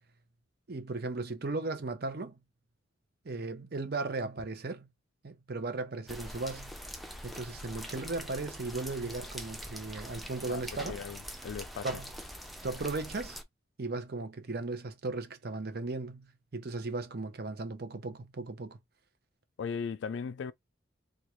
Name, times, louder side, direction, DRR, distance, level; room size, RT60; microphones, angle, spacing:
voice 1, 0.7-2.4 3.2-4.9 5.2-6.7 7.2-11.0 11.8-12.1 12.6-13.4 13.8-18.8, right 3 dB, 55° right, 0.7 m, -36 dB
sound 1, 6.1-13.4, equal, ahead, 0.4 m, -43 dB
voice 2, 10.9-11.9 19.6-20.5, left 6 dB, 70° left, 0.4 m, -37 dB
3.6 x 2.3 x 3.0 m
head